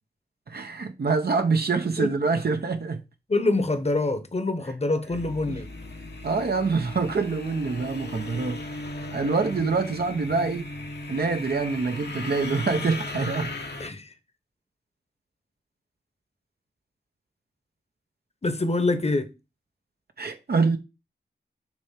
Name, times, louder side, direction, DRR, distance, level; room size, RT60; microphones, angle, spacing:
voice 1, 0.5-3.0 6.2-8.7 9.1-10.6 11.1-13.5 20.2-20.8, right 4 dB, 65° right, 0.9 m, -25 dB
voice 2, 3.3-5.7 13.8-14.1 18.4-19.3, left 2 dB, 35° left, 1.0 m, -25 dB
sound 1, 5.1-13.9, left 2 dB, 70° left, 1.2 m, -36 dB
6.1 x 3.3 x 5.7 m
cardioid pair, 55°, 18 cm